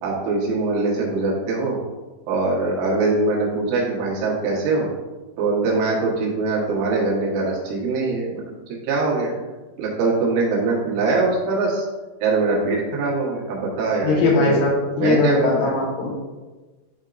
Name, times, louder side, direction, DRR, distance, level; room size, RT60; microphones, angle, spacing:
voice 1, 0.0-1.8 2.2-4.9 5.4-9.3 9.8-11.9 12.2-14.6 15.0-15.8, right 3 dB, 80° right, -4 dB, 3.9 m, -22 dB
voice 2, 14.0-16.1, left 3 dB, 70° left, -3 dB, 3.2 m, -20 dB
12.0 x 4.4 x 2.5 m, 1.2 s
omnidirectional pair, 5.5 m